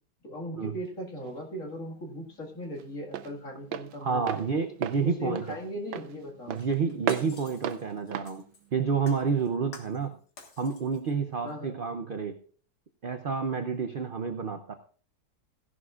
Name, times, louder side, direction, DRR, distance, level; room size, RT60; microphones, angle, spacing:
voice 1, 0.2-4.5 5.0-6.6 11.4-11.8, equal, 50° left, 0 dB, 2.4 m, -38 dB
Walk footsteps, 0.9-9.5, right 10 dB, 90° right, 1.3 m, -37 dB
voice 2, 4.0-5.4 6.5-8.4 8.7-10.2 10.6-12.4 13.0-14.7, right 5 dB, 60° right, 6 dB, 0.5 m, -29 dB
Shatter, 6.6-8.7 9.1-10.1 10.4-11.1 11.5-11.6, left 4 dB, 80° left, 2.3 m, -49 dB
16.0 x 11.0 x 2.4 m, 0.44 s
omnidirectional pair, 1.9 m